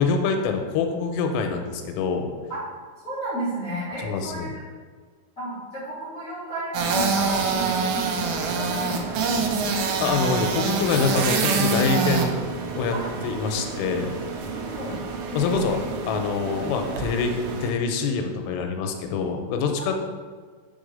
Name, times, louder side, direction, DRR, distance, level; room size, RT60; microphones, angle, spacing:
voice 1, 0.0-2.3 4.0-4.5 10.0-12.4 12.7-13.0 13.2-14.1 15.3-15.8 16.1-20.1, left 5 dB, 90° left, 4 dB, 3.2 m, -25 dB
voice 2, 3.0-4.6 5.3-9.7 12.9-13.3 14.5-15.0 15.3-15.8, right 1 dB, 70° left, -11 dB, 0.7 m, -33 dB
sound 1, 6.7-17.7, right 4 dB, 85° right, 2.6 m, -26 dB
7.2 x 4.0 x 5.2 m, 1.5 s
omnidirectional pair, 5.8 m